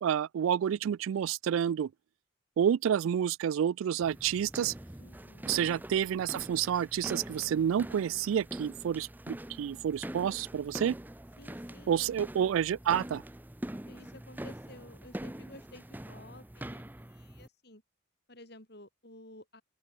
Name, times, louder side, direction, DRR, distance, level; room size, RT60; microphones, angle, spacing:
voice 1, 0.0-1.9 2.6-4.7 5.5-11.0 11.9-13.2, right 9 dB, 80° right, 0.3 m, -29 dB
sound 1, 4.0-17.5, right 1 dB, 10° right, 0.6 m, -44 dB
voice 2, 5.0-5.5 11.4-12.1 13.9-17.8 18.3-19.6, left 1 dB, 50° left, 4.9 m, -53 dB
open air
head